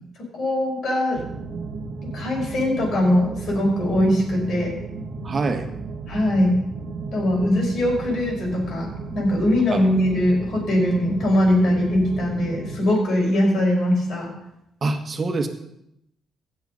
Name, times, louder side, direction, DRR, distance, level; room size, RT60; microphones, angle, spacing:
voice 1, 0.3-1.2 2.0-4.7 6.1-6.6 7.1-8.9 9.1-14.3, left 1 dB, 60° left, -1 dB, 5.8 m, -21 dB
sound 1, 1.1-12.8, right 4 dB, 65° right, 1.2 m, -34 dB
voice 2, 5.2-5.7 9.7-9.9 14.8-15.5, right 3 dB, 40° right, 6 dB, 1.5 m, -25 dB
16.5 x 6.9 x 5.4 m, 0.82 s
cardioid pair, 90°, 0 cm